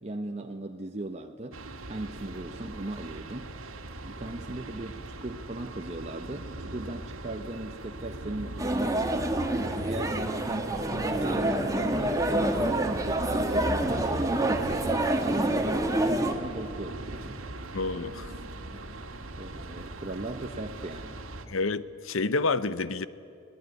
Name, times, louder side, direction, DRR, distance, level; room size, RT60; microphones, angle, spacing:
voice 1, 0.0-1.6 1.9-3.5 4.0-9.0 9.5-14.9 15.2-17.4 18.6-18.9 19.3-21.2, right 2 dB, 30° right, 3 dB, 0.9 m, -38 dB
sound 1, 1.5-21.5, right 1 dB, 75° right, 2.1 m, -39 dB
sound 2, 8.6-16.3, right 1 dB, 15° right, 1.7 m, -27 dB
voice 2, 17.7-18.3 21.5-23.0, left 3 dB, 65° left, 15 dB, 0.9 m, -29 dB
23.5 x 19.0 x 9.6 m, 2.5 s
head